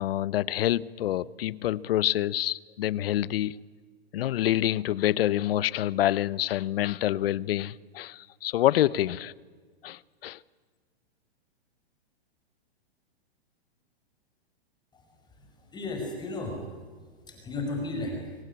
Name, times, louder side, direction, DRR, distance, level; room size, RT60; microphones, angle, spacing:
voice 1, 0.0-3.6 4.1-9.3 9.8-10.4, left 13 dB, 65° left, 21 dB, 0.9 m, -27 dB
voice 2, 14.9-16.6 17.2-18.3, left 2 dB, 15° left, 3 dB, 5.4 m, -35 dB
24.5 x 18.5 x 9.9 m, 1.5 s
hypercardioid pair, 145°, 32 cm